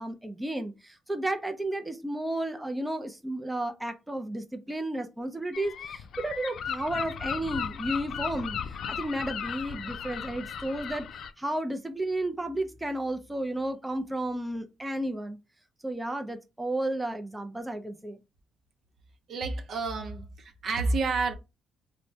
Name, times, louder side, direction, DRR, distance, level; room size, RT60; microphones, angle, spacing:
voice 1, 0.0-11.1 11.4-15.4 15.8-18.2, right 1 dB, 10° right, 0.4 m, -33 dB
Gull seagull, 5.5-11.3, left 7 dB, 65° left, 0.3 m, -36 dB
voice 2, 19.3-21.3, right 3 dB, 60° right, 0.6 m, -29 dB
3.2 x 2.1 x 2.6 m
cardioid pair, 90°, 0 cm